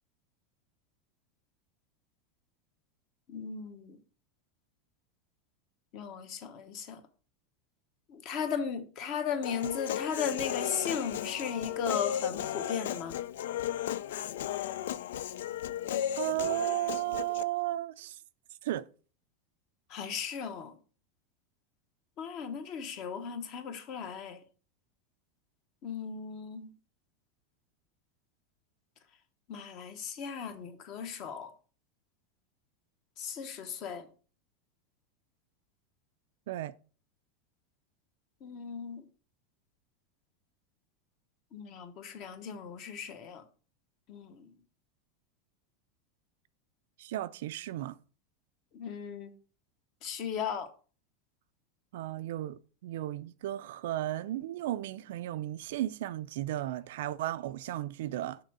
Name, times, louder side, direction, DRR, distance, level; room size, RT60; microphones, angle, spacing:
voice 1, 3.3-4.0 5.9-7.0 8.1-13.2 19.9-20.7 22.2-24.4 25.8-26.7 29.5-31.5 33.2-34.1 38.4-39.0 41.5-43.4 44.1-44.5 48.7-49.3 50.0-50.7, left 6 dB, 35° left, 0.9 m, -36 dB
Human voice, 9.4-17.4, left 11 dB, 85° left, 0.4 m, -35 dB
voice 2, 16.2-18.2 18.6-18.9 36.5-36.7 47.0-48.0 51.9-58.4, right 14 dB, 65° right, 0.4 m, -34 dB
6.7 x 3.6 x 6.0 m
supercardioid pair, 180°, 0 cm